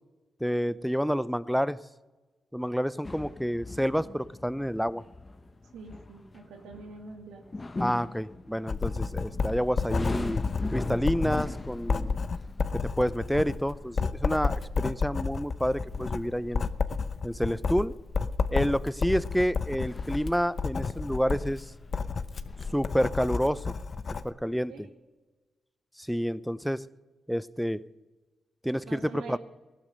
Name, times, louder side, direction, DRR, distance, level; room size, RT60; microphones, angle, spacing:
voice 1, 0.4-1.8 2.5-5.0 7.8-10.4 10.7-12.1 12.7-16.7 17.2-18.0 18.5-21.7 22.7-23.7 24.2-24.7 26.0-26.8 27.3-27.8 28.6-29.4, equal, ahead, 17 dB, 0.6 m, -29 dB
sound 1, 3.0-22.7, left 2 dB, 30° left, 1.0 m, -41 dB
voice 2, 5.7-7.4 24.7-24.9 28.8-29.4, right 4 dB, 90° right, 3 dB, 1.8 m, -44 dB
Writing, 8.7-24.3, left 4 dB, 55° left, 0.8 m, -31 dB
16.0 x 12.0 x 6.4 m, 1.2 s
supercardioid pair, 50°, 0 cm